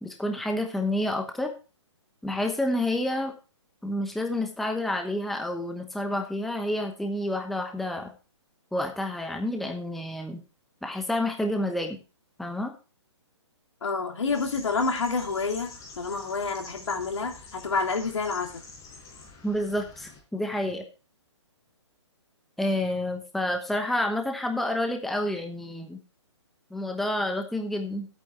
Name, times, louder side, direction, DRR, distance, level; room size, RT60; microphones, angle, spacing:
voice 1, 0.0-1.5 2.2-3.3 3.8-8.1 8.7-10.4 10.8-12.0 12.4-12.7 19.4-20.8 22.6-26.0 26.7-28.1, left 1 dB, ahead, 4 dB, 1.0 m, -29 dB
voice 2, 13.8-15.7 16.0-18.5, left 4 dB, 80° left, 3 dB, 3.0 m, -28 dB
sound 1, 14.2-20.2, left 3 dB, 20° left, 5.2 m, -47 dB
13.0 x 8.8 x 3.2 m, 0.32 s
hypercardioid pair, 145°, 15 cm